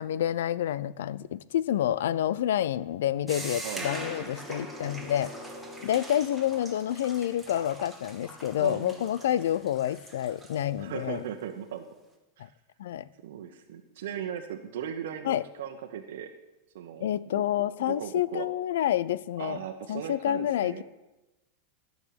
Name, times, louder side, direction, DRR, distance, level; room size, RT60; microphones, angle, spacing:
voice 1, 0.0-5.3 5.8-11.2 12.8-13.0 15.2-15.4 17.0-19.6 19.9-20.8, left 11 dB, 85° left, 19 dB, 0.5 m, -28 dB
sound 1, 3.3-10.7, right 1 dB, ahead, 1.3 m, -42 dB
voice 2, 8.6-9.1 10.8-11.8 12.4-12.5 13.2-16.3 16.7-17.4 17.8-18.5 19.4-20.8, right 9 dB, 70° right, 4 dB, 1.0 m, -38 dB
13.0 x 6.5 x 8.7 m, 1.0 s
supercardioid pair, 175°, 0 cm